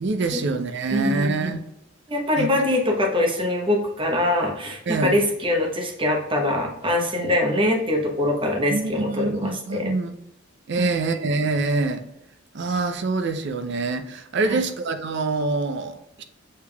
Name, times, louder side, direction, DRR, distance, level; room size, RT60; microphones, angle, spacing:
voice 1, 0.0-1.6 2.4-2.5 4.9-5.2 8.7-10.2 10.7-12.1 12.5-16.2, right 3 dB, 60° right, 7 dB, 0.5 m, -25 dB
voice 2, 0.9-1.5 2.1-9.9 10.8-10.9 14.5-14.6, left 1 dB, 25° right, 1 dB, 0.9 m, -23 dB
6.5 x 3.4 x 2.3 m, 0.86 s
head